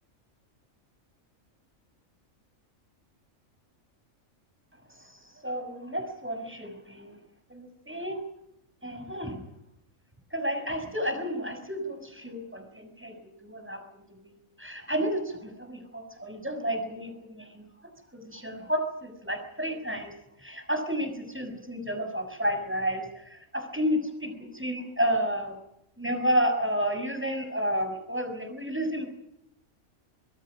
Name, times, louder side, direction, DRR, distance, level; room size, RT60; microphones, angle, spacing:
voice 1, 4.9-7.2 7.5-8.2 8.8-9.4 10.3-14.3 14.6-17.6 18.1-20.1 20.4-25.6 26.0-29.0, equal, 10° right, 6 dB, 6.2 m, -31 dB
26.0 x 21.5 x 6.4 m, 0.79 s
omnidirectional pair, 1.4 m